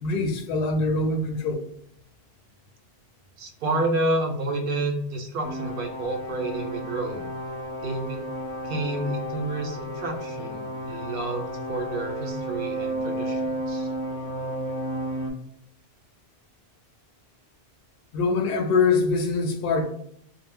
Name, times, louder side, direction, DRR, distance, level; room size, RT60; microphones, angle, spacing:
voice 1, 0.0-1.6 18.1-19.9, left 3 dB, 70° left, 3 dB, 0.8 m, -23 dB
voice 2, 3.4-7.2 7.8-8.2 8.6-13.9, right 2 dB, 65° right, 4 dB, 0.7 m, -29 dB
sound 1, 5.4-15.3, right 1 dB, 20° right, 0.6 m, -32 dB
2.1 x 2.0 x 3.4 m, 0.69 s
omnidirectional pair, 1.1 m